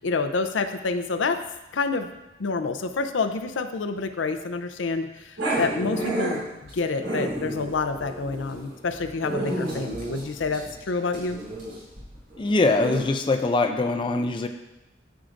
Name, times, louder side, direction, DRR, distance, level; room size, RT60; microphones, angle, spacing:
voice 1, 0.0-1.4 1.7-2.1 2.4-6.5 6.7-11.4, left 4 dB, 85° left, 7 dB, 0.6 m, -28 dB
Growling, 5.4-13.0, right 1 dB, 85° right, 2.7 m, -31 dB
voice 2, 12.4-14.5, left 3 dB, 25° left, 5 dB, 0.4 m, -23 dB
13.0 x 4.7 x 2.5 m, 0.97 s
head